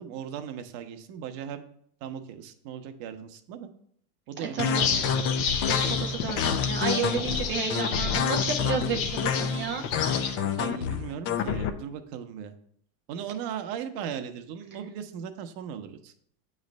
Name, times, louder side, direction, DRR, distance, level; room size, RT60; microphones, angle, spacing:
voice 1, 0.0-1.6 2.0-3.7 4.3-5.2 10.6-12.5 13.1-16.1, right 8 dB, 50° right, 8 dB, 0.9 m, -37 dB
voice 2, 4.4-4.8 5.7-9.8, right 6 dB, 25° right, 3 dB, 0.4 m, -31 dB
sound 1, 4.6-11.7, left 7 dB, 30° left, 0.5 m, -28 dB
sound 2, 4.7-10.4, left 7 dB, 65° left, 1.0 m, -31 dB
7.9 x 3.2 x 5.1 m, 0.65 s
supercardioid pair, 120°, 47 cm